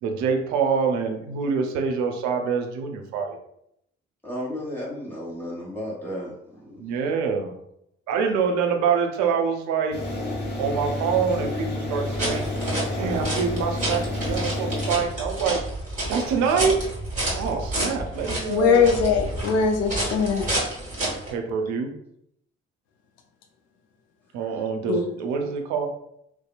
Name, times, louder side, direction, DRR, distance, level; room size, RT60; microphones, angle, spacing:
voice 1, 0.0-3.4 6.8-7.5 8.1-10.0 10.6-12.4 13.0-15.6 16.1-16.8 17.3-18.9 21.3-21.9 24.3-25.9, right 6 dB, 65° right, 4 dB, 0.5 m, -25 dB
voice 2, 4.2-6.3, equal, 5° left, -6 dB, 1.1 m, -33 dB
sound 1, 9.9-14.9, left 1 dB, 35° left, 0.8 m, -29 dB
sound 2, 12.0-21.3, right 1 dB, 25° right, 1.3 m, -30 dB
voice 3, 18.5-20.4 24.9-25.0, left 5 dB, 55° left, 4 dB, 0.4 m, -21 dB
2.7 x 2.1 x 2.3 m, 0.74 s
figure-of-eight pair, 40°, 31 cm